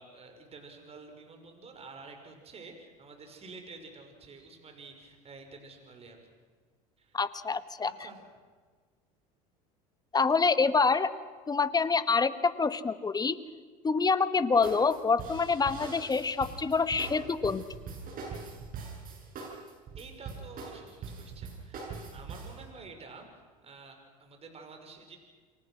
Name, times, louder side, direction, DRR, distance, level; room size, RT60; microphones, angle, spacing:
voice 1, 0.0-6.2 7.0-7.2 7.8-8.2 20.0-21.9 22.1-25.2, right 4 dB, 30° right, 4 dB, 5.8 m, -49 dB
voice 2, 7.1-7.9 10.1-11.1 11.5-13.4 13.8-17.6, left 4 dB, 20° left, 13 dB, 1.5 m, -26 dB
sound 1, 14.6-22.6, right 4 dB, 50° right, 8.0 m, -42 dB
29.0 x 24.0 x 6.4 m, 1.5 s
hypercardioid pair, 85°, 19 cm